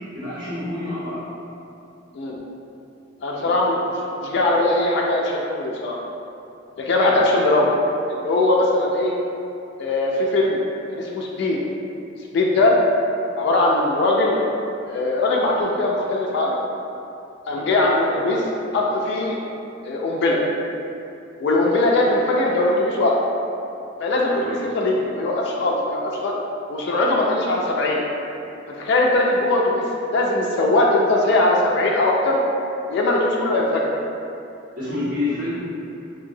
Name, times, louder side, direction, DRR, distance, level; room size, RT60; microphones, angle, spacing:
voice 1, 0.1-1.2 3.3-3.5 17.5-17.7 24.4-24.6 34.7-35.6, left 2 dB, 45° right, -14 dB, 1.5 m, -28 dB
voice 2, 3.2-6.0 6.8-7.7 8.1-9.1 9.8-10.6 10.9-11.6 12.3-12.7 13.4-14.4 14.9-16.6 17.5-18.4 18.7-19.4 19.8-20.4 21.4-23.2 24.0-26.3 26.7-28.0 28.8-32.4 32.9-33.9, left 2 dB, 60° left, -2 dB, 0.3 m, -20 dB
2.8 x 2.6 x 2.6 m, 2.7 s
head